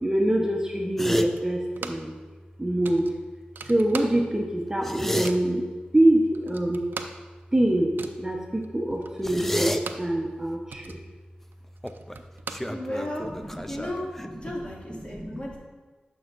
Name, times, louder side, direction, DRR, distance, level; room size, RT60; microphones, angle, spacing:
voice 1, 0.0-2.1 2.6-3.1 3.6-5.6 5.9-6.8 7.5-7.9 8.2-11.0 15.2-15.4, right 1 dB, 15° right, -1 dB, 0.8 m, -24 dB
sound 1, 1.0-1.3 4.7-5.3 9.2-9.8 11.8-12.2 12.5-14.5, equal, 10° left, 0.5 m, -30 dB
sound 2, 1.3-2.2 2.4-2.5 2.8-4.5 4.8-5.5 6.0-6.1 6.3-10.2 10.5-13.3, right 4 dB, 80° right, 0.4 m, -41 dB
voice 2, 12.7-14.1 14.4-15.6, left 1 dB, 35° left, -3 dB, 2.1 m, -34 dB
11.0 x 5.4 x 2.5 m, 1.3 s
cardioid pair, 45°, 3 cm